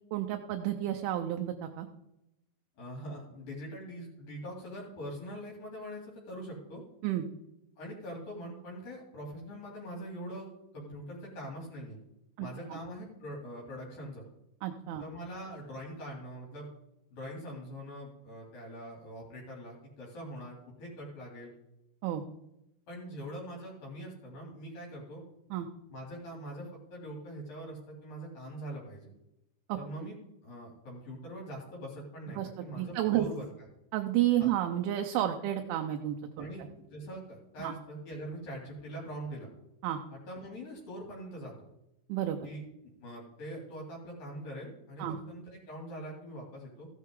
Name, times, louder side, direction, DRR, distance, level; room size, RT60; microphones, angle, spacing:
voice 1, 0.1-1.9 7.0-7.2 12.4-12.5 14.6-15.0 22.0-22.2 25.5-25.7 29.7-29.8 32.4-32.5 32.8-33.3 33.9-36.5 37.6-37.7 39.8-40.0 42.1-42.5 45.0-45.2, right 12 dB, 80° right, 4 dB, 3.0 m, -31 dB
voice 2, 2.8-6.8 7.8-10.5 10.7-12.0 12.4-14.2 15.0-16.7 17.1-21.5 22.9-25.2 25.9-29.1 29.8-30.2 30.4-33.5 34.4-34.5 36.4-39.5 40.1-41.6 42.4-42.6 43.0-46.9, equal, 50° left, -2 dB, 3.9 m, -43 dB
15.5 x 9.6 x 3.8 m, 0.88 s
omnidirectional pair, 5.9 m